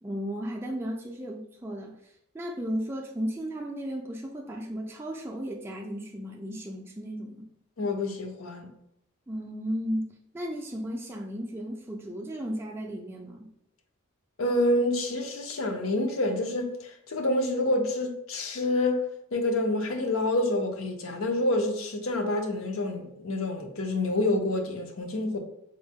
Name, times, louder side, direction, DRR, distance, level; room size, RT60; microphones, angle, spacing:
voice 1, 0.0-7.5 9.3-13.5, equal, 10° right, 0.3 m, -35 dB
voice 2, 7.8-8.7 14.4-19.0 19.3-25.4, left 1 dB, 75° left, 0.6 m, -27 dB
3.9 x 2.1 x 3.5 m
head